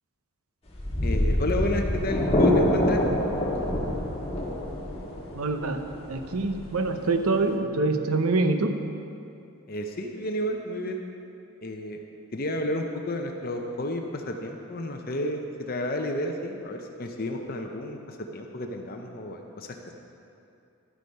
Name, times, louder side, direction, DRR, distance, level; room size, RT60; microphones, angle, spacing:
sound 1, 0.7-7.5, left 1 dB, 30° left, 1.5 m, -26 dB
voice 1, 1.0-3.0 9.7-11.0 11.6-12.0 12.3-19.9, left 1 dB, 45° left, 3 dB, 0.7 m, -31 dB
voice 2, 5.3-5.8 6.1-8.7, right 3 dB, 85° right, 7 dB, 0.8 m, -25 dB
11.5 x 8.1 x 5.4 m, 2.6 s
head